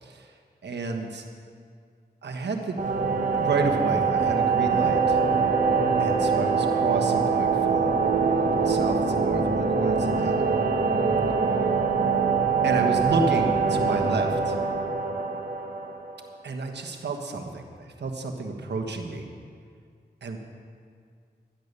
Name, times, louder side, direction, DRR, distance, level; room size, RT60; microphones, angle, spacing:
voice 1, 0.0-0.3 0.6-1.2 2.2-2.8 3.4-5.2 6.0-7.9 8.6-10.5 12.6-14.5 16.4-19.2 20.2-20.4, right 3 dB, 85° right, 3 dB, 1.4 m, -30 dB
sound 1, 2.8-16.3, right 5 dB, 50° right, 1.6 m, -24 dB
12.5 x 10.5 x 6.8 m, 2.1 s
cardioid pair, 55°, 17 cm